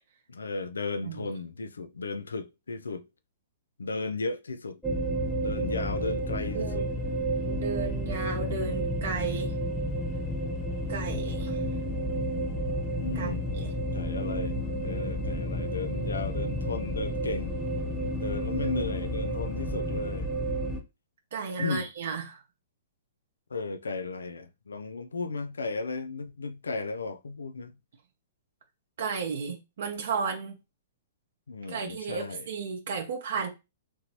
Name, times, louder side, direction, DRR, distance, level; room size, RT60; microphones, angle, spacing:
voice 1, 0.3-3.1 3.8-4.8 5.4-6.9 13.0-13.6 13.9-17.6 18.1-20.3 21.6-21.9 23.5-27.7 31.5-32.5, left 4 dB, 90° left, 0.3 m, -35 dB
sound 1, 4.8-20.8, equal, 10° left, 0.9 m, -31 dB
voice 2, 6.5-6.9 7.4-9.5 10.9-11.6 13.1-13.7 21.3-22.4 29.0-30.5 31.7-33.5, right 5 dB, 65° right, 0.8 m, -34 dB
2.9 x 2.6 x 2.9 m
hypercardioid pair, 130°, 0 cm